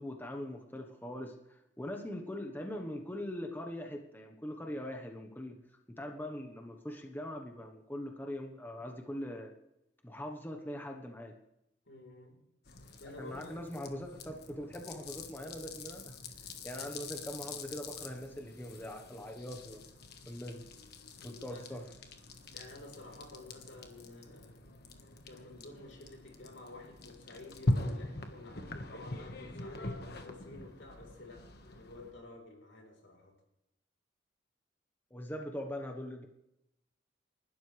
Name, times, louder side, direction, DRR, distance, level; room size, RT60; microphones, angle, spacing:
voice 1, 0.0-5.6 5.9-9.5 10.0-11.3 13.2-16.2 16.6-19.8 20.3-20.7 21.2-21.9 35.1-36.3, left 1 dB, 10° left, 3 dB, 1.2 m, -42 dB
voice 2, 11.9-12.4 13.0-13.6 16.7-17.1 21.2-21.8 22.5-24.7 25.2-33.3, left 2 dB, 75° left, 1 dB, 4.2 m, -51 dB
sound 1, 12.6-32.1, left 2 dB, 55° left, 1.6 m, -42 dB
29.5 x 12.5 x 3.4 m, 0.85 s
head